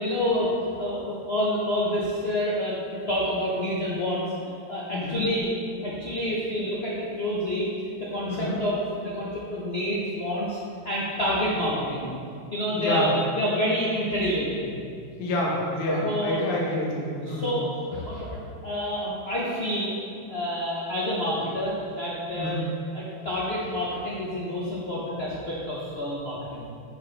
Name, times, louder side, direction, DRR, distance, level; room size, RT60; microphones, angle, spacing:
voice 1, 0.0-5.5 5.8-7.7 8.1-10.6 10.8-12.1 12.5-14.7 16.0-16.4 17.2-18.3 18.6-19.9 20.3-22.5 22.9-26.7, equal, 70° left, -6 dB, 0.5 m, -28 dB
voice 2, 4.9-5.2 6.7-6.9 8.3-8.6 12.7-13.1 15.2-17.6 22.4-22.7, left 1 dB, 50° left, -4 dB, 1.3 m, -28 dB
11.0 x 4.3 x 3.3 m, 2.4 s
omnidirectional pair, 2.4 m